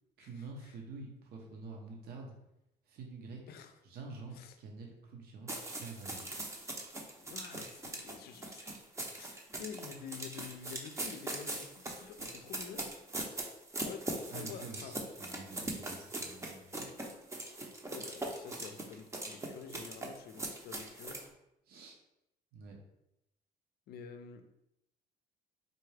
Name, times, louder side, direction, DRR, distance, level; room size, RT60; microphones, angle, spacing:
voice 1, 0.2-2.4 2.8-3.4 3.8-6.3 14.3-17.0 21.7-22.0 22.5-22.8, right 3 dB, 65° right, 0 dB, 0.9 m, -48 dB
sound 1, 5.5-21.3, right 2 dB, 15° right, 0.6 m, -41 dB
voice 2, 7.2-8.7 9.1-12.9 13.8-15.0 17.9-21.2 23.9-24.5, left 7 dB, 70° left, 8 dB, 0.5 m, -49 dB
4.0 x 2.3 x 3.2 m, 0.84 s
cardioid pair, 110°, 17 cm